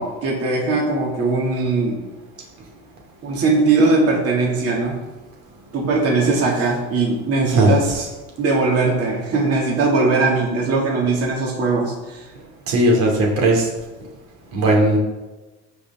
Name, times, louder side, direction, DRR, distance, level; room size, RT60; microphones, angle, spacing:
voice 1, 0.0-2.0 3.2-5.0 5.7-8.1 8.4-12.3, right 3 dB, 50° right, -3 dB, 2.4 m, -20 dB
voice 2, 12.7-13.7 14.5-15.0, right 1 dB, 80° right, -1 dB, 2.8 m, -16 dB
15.0 x 5.1 x 3.7 m, 1.1 s
cardioid pair, 120°, 32 cm